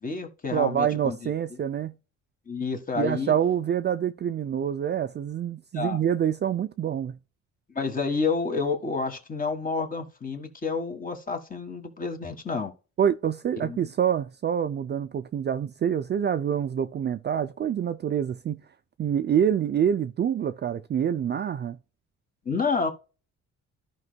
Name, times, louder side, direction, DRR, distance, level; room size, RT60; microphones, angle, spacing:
voice 1, 0.0-1.3 2.5-3.3 5.7-6.0 7.7-12.7 13.6-13.8 22.4-22.9, left 4 dB, 25° left, 1.6 m, -29 dB
voice 2, 0.5-1.9 3.0-7.2 13.0-18.6 19.0-21.8, right 9 dB, 35° right, 0.4 m, -26 dB
14.0 x 5.3 x 2.3 m
cardioid pair, 130°, 31 cm